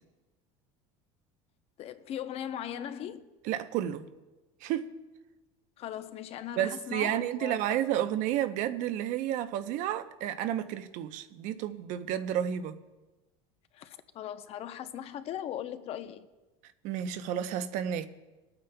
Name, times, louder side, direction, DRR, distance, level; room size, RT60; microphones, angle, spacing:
voice 1, 1.8-3.3 5.8-8.1 13.7-16.3, left 10 dB, 45° left, 0.7 m, -39 dB
voice 2, 3.4-4.1 4.6-4.9 6.6-12.8 16.8-18.1, right 11 dB, 65° right, 0.7 m, -31 dB
25.0 x 8.9 x 2.3 m
cardioid pair, 130°, 14 cm